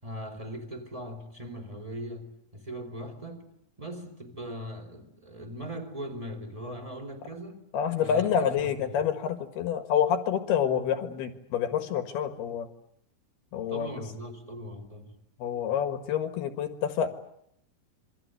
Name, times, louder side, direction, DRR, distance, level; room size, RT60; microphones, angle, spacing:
voice 1, 0.0-3.5 3.8-7.6 8.0-9.0 13.7-15.2, equal, 10° right, 3.4 m, -40 dB
voice 2, 7.7-12.7 13.5-13.9 15.4-17.1, left 8 dB, 60° left, 3.1 m, -28 dB
27.5 x 24.0 x 8.0 m
omnidirectional pair, 5.9 m